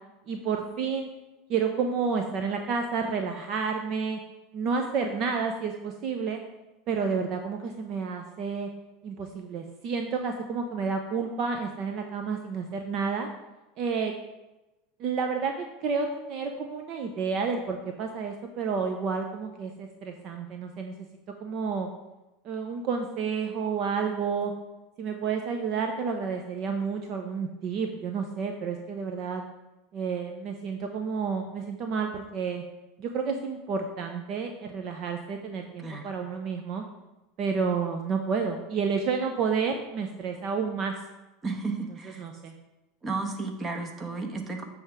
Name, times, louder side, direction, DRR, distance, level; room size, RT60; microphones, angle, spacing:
voice 1, 0.3-1.1 1.5-4.2 4.5-6.4 6.9-8.7 9.0-13.3 13.8-14.1 15.0-20.9 21.4-21.9 22.4-24.5 25.0-29.4 29.9-32.6 33.0-36.8 37.4-40.9 42.0-42.5, right 5 dB, 50° right, 4 dB, 0.7 m, -30 dB
voice 2, 41.4-42.2 43.0-44.6, right 3 dB, 25° right, 4 dB, 1.2 m, -33 dB
7.3 x 3.5 x 6.0 m, 1.0 s
hypercardioid pair, 95°, 0 cm